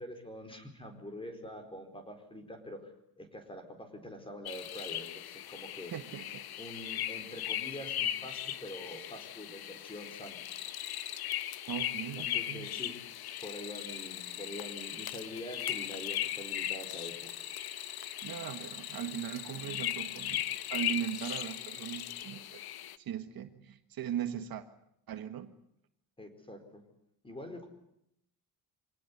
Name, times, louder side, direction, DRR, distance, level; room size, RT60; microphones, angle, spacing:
voice 1, 0.0-2.9 3.2-5.9 6.6-10.4 12.2-12.9 13.4-17.3 26.2-26.8 27.2-27.7, left 1 dB, 10° left, 7 dB, 4.6 m, -45 dB
sound 1, 4.5-23.0, left 11 dB, 60° left, 1.2 m, -38 dB
voice 2, 5.9-6.4 11.7-12.7 18.2-22.6 23.0-24.7 25.1-25.5, right 10 dB, 55° right, 9 dB, 1.6 m, -39 dB
25.5 x 18.5 x 9.7 m, 0.76 s
cardioid pair, 165°, 42 cm